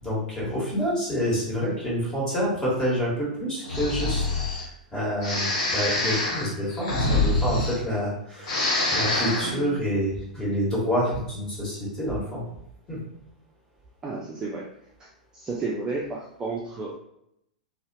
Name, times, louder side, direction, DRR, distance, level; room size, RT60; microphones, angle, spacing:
voice 1, 0.0-4.2 4.5-12.4 12.9-13.0, equal, 15° left, -7 dB, 1.4 m, -28 dB
Breathing, 3.6-4.7 5.2-8.1 8.4-9.6, left 2 dB, 50° left, 1.0 m, -25 dB
voice 2, 9.4-9.8 14.0-14.7 15.0-17.0, right 3 dB, 15° right, -4 dB, 0.4 m, -32 dB
2.7 x 2.1 x 2.7 m, 0.77 s
figure-of-eight pair, 100°, 4 cm